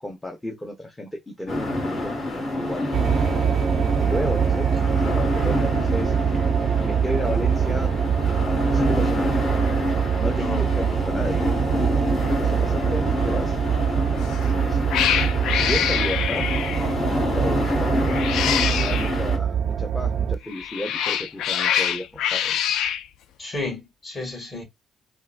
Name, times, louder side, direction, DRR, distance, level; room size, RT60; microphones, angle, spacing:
voice 1, 0.0-3.1 4.0-6.1 6.8-7.9 8.7-9.4 10.2-11.5 12.3-13.6 14.4-15.0 15.6-16.5 17.3-22.6, left 1 dB, 15° left, 0.7 m, -33 dB
sound 1, 1.5-19.4, left 1 dB, 50° left, 1.5 m, -27 dB
sound 2, 2.9-20.4, right 8 dB, 65° right, 0.3 m, -24 dB
voice 2, 10.4-10.8 23.4-24.6, left 2 dB, 35° left, 1.9 m, -32 dB
Cat, 14.2-14.5 14.9-16.9 18.0-19.1 20.4-23.0, left 9 dB, 85° left, 0.3 m, -25 dB
3.7 x 2.2 x 2.4 m
cardioid pair, 90°, 0 cm